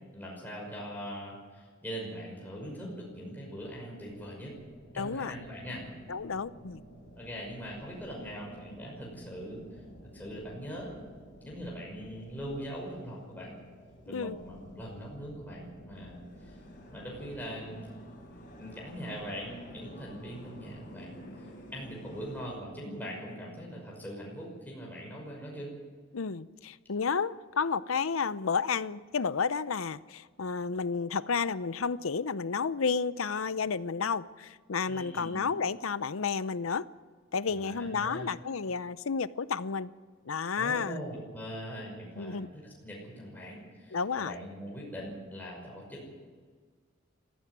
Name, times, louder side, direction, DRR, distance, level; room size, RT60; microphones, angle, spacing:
voice 1, 0.1-4.6 4.9-5.8 7.2-9.8 10.1-10.9 11.4-13.5 14.1-16.6 16.9-17.8 18.6-25.7 34.8-35.4 37.5-38.3 40.6-46.1, equal, 10° left, -3 dB, 5.8 m, -41 dB
sound 1, 3.5-22.5, equal, 45° left, 5.7 m, -51 dB
voice 2, 5.0-5.3 6.1-6.8 14.1-14.4 26.1-36.9 37.3-39.9 40.3-41.0 42.2-42.5 43.9-44.3, left 5 dB, 85° left, 16 dB, 0.7 m, -31 dB
20.5 x 14.5 x 9.4 m, 1.5 s
head